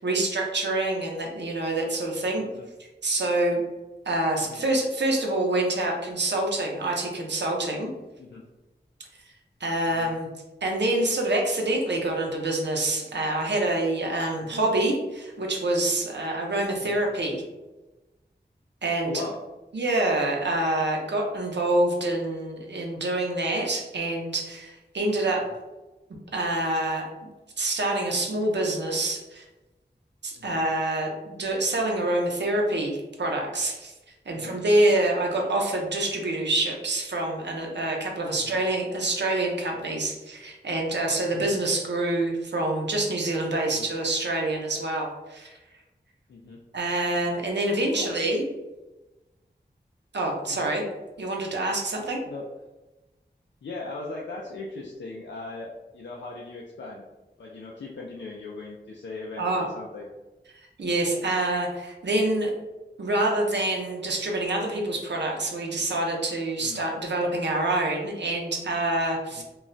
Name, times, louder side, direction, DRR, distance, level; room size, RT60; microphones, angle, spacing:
voice 1, 0.0-2.4 3.0-3.6 4.1-7.9 9.6-10.3 10.6-17.4 18.8-19.2 19.7-25.5 26.3-27.1 27.6-29.4 30.2-33.9 34.3-45.5 46.7-48.5 50.1-50.8 51.2-52.2 59.4-59.6 60.8-62.5 63.0-69.4, right 2 dB, 80° right, 0 dB, 0.6 m, -26 dB
voice 2, 19.0-19.4 30.3-30.6 34.3-34.5 38.3-38.5 41.3-41.5 43.6-43.9 46.3-46.6 47.9-48.1 50.5-50.7 52.3-52.4 53.6-57.0 57.4-60.1 66.6-66.8 69.3-69.4, left 3 dB, 90° left, -3 dB, 0.4 m, -39 dB
2.3 x 2.1 x 3.8 m, 1.1 s
wide cardioid pair, 45°, 18 cm